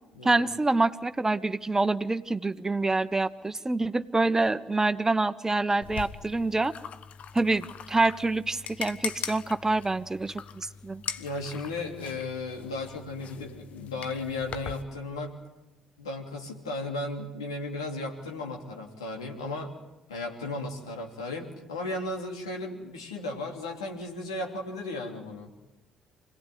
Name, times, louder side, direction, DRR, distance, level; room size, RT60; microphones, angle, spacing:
voice 1, 0.2-6.7 7.3-11.0, right 2 dB, 20° right, 13 dB, 1.1 m, -26 dB
sound 1, 5.8-14.8, left 7 dB, 55° left, 1.2 m, -41 dB
voice 2, 11.2-15.3 16.0-19.7 20.1-25.5, left 2 dB, 90° left, 1 dB, 3.2 m, -35 dB
26.0 x 18.0 x 9.5 m, 0.97 s
hypercardioid pair, 50°, 3 cm